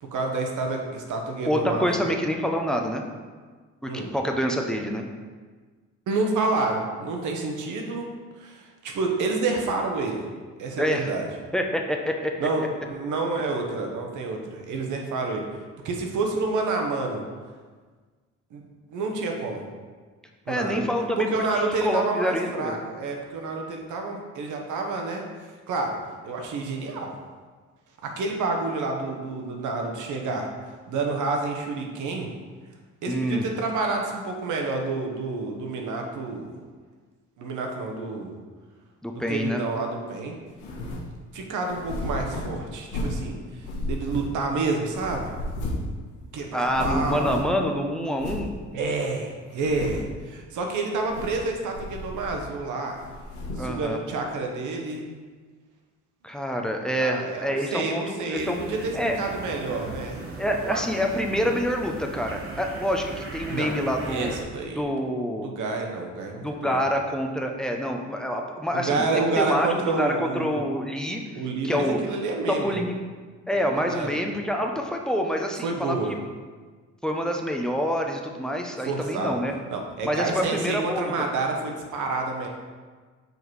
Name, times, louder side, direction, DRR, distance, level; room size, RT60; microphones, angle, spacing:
voice 1, 0.0-2.1 3.8-4.1 6.1-8.1 8.4-10.3 10.6-11.3 12.4-15.4 15.8-17.2 18.5-19.6 20.5-20.8 21.2-25.2 25.7-26.0 26.2-27.2 28.0-30.5 30.9-32.3 33.0-36.5 37.4-38.3 39.1-40.4 41.3-45.3 46.3-47.3 48.7-53.0 53.6-55.0 57.0-60.3 60.6-60.8 63.5-64.8 65.4-66.8 68.7-70.6 71.3-72.8 73.7-74.1 75.6-76.1 78.8-79.3 79.7-82.5, right 3 dB, 80° right, 2 dB, 1.1 m, -29 dB
voice 2, 1.4-3.0 3.8-5.0 10.8-11.1 11.5-12.5 20.5-22.8 33.1-33.4 39.0-39.6 46.5-48.5 53.6-54.0 56.2-58.6 58.9-59.2 60.4-64.4 64.8-65.5 66.4-69.7 70.0-71.2 71.6-72.0 72.5-73.0 73.5-75.9 77.0-79.5 80.0-81.1, equal, ahead, 2 dB, 0.7 m, -27 dB
sound 1, 40.6-41.1 41.6-43.3 43.6-44.6 44.9-46.0 46.2-46.3 46.6-47.6 48.2-48.5 49.0-49.1 49.5-50.2 50.9-51.5 51.7-52.6 53.0-53.8, left 1 dB, 90° left, 1.4 m, -33 dB
sound 2, 58.3-64.4, right 3 dB, 45° right, 1.1 m, -38 dB
5.3 x 3.9 x 4.7 m, 1.5 s
cardioid pair, 90°, 30 cm